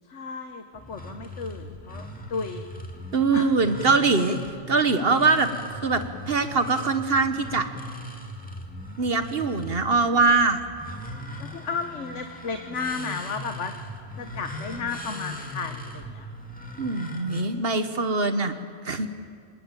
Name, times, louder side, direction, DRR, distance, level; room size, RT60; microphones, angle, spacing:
voice 1, 0.1-2.7 3.3-3.5 11.4-13.7 14.2-16.3, left 5 dB, 90° left, 7 dB, 1.5 m, -33 dB
sound 1, 0.7-17.4, equal, 5° left, 2.4 m, -39 dB
voice 2, 3.1-4.4 4.7-7.7 9.0-10.6 16.8-18.5 18.8-19.1, right 4 dB, 55° right, 9 dB, 1.4 m, -23 dB
25.5 x 20.5 x 9.0 m, 2.1 s
omnidirectional pair, 1.2 m